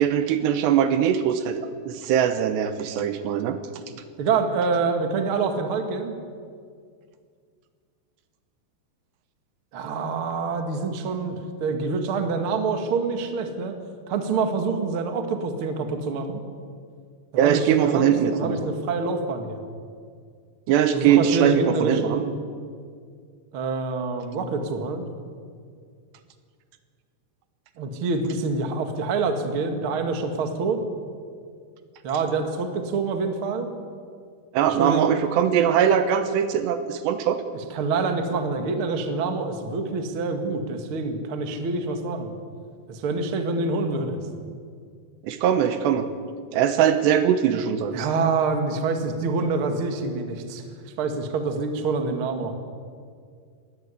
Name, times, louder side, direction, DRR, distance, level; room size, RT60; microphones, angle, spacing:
voice 1, 0.0-1.6 1.9-3.6 17.4-18.6 20.7-22.2 34.5-37.4 45.2-46.1 46.5-48.1, right 9 dB, 75° right, 10 dB, 3.0 m, -21 dB
voice 2, 4.2-6.1 9.7-13.8 14.1-16.4 17.3-19.6 20.9-22.3 23.5-25.0 27.8-30.8 32.0-33.7 34.7-35.1 37.5-42.3 42.9-44.2 47.9-50.6 51.0-52.6, right 4 dB, 50° right, 5 dB, 1.6 m, -26 dB
21.0 x 18.0 x 8.3 m, 2.1 s
omnidirectional pair, 5.3 m